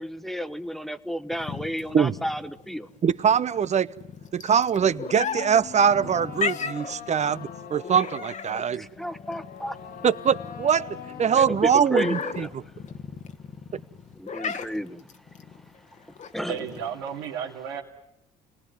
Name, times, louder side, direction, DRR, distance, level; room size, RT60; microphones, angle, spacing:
voice 1, 0.0-2.9 8.7-9.8 11.3-12.5 14.1-15.0 16.3-16.6, equal, ahead, 1.4 m, -32 dB
sound 1, 1.3-17.3, left 6 dB, 40° left, 1.5 m, -36 dB
voice 2, 3.0-3.9 4.3-8.8 10.0-12.6, right 7 dB, 40° right, 0.9 m, -23 dB
sound 2, 4.7-12.7, left 7 dB, 60° left, 2.2 m, -42 dB
voice 3, 16.5-17.8, right 8 dB, 80° right, 2.7 m, -33 dB
29.5 x 19.5 x 9.4 m
hypercardioid pair, 65°, 18 cm